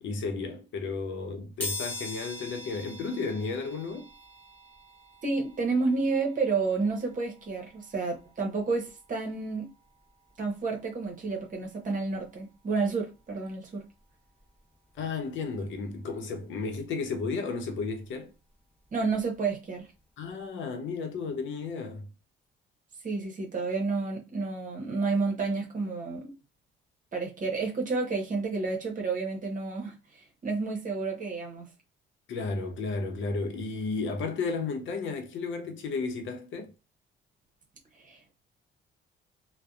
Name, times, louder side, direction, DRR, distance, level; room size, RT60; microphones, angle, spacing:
voice 1, 0.0-4.1 15.0-18.3 20.2-22.1 32.3-36.7, left 4 dB, 75° left, 0.7 m, -33 dB
sound 1, 1.6-12.3 12.7-12.8 14.0-14.1 14.4-16.5 16.8-19.4 19.8-20.0 20.3-20.4, left 2 dB, 10° left, 1.0 m, -44 dB
voice 2, 5.2-9.7 10.4-13.8 18.9-19.9 23.0-26.3 27.1-29.9 30.4-31.7 38.0-38.3, right 4 dB, 40° right, 0.9 m, -30 dB
2.6 x 2.1 x 2.3 m
cardioid pair, 90°, 20 cm